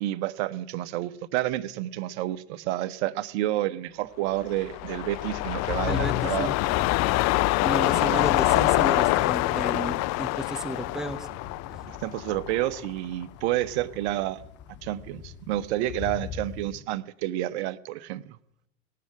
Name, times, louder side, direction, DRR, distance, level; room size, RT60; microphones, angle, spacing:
voice 1, 0.0-6.5 11.9-14.4 14.8-18.4, right 14 dB, 70° right, 13 dB, 0.9 m, -29 dB
sound 1, 4.4-12.9 13.2-13.3, left 19 dB, 50° left, 0.5 m, -25 dB
sound 2, 5.6-16.8, left 7 dB, 30° left, 3.0 m, -43 dB
voice 2, 5.9-6.5 7.6-11.3, right 1 dB, ahead, 10 dB, 1.0 m, -33 dB
18.0 x 7.6 x 9.7 m, 0.77 s
hypercardioid pair, 90°, 35 cm